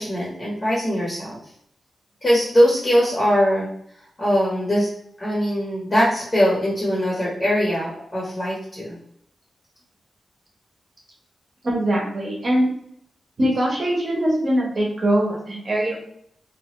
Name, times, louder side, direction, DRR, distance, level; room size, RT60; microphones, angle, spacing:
voice 1, 0.0-1.4 2.2-3.7 4.2-4.9 5.2-9.0, equal, 25° left, -5 dB, 0.8 m, -21 dB
voice 2, 11.6-12.7 13.4-16.0, right 1 dB, 40° right, -2 dB, 0.9 m, -22 dB
2.8 x 2.3 x 2.9 m, 0.69 s
wide cardioid pair, 175°, 0 cm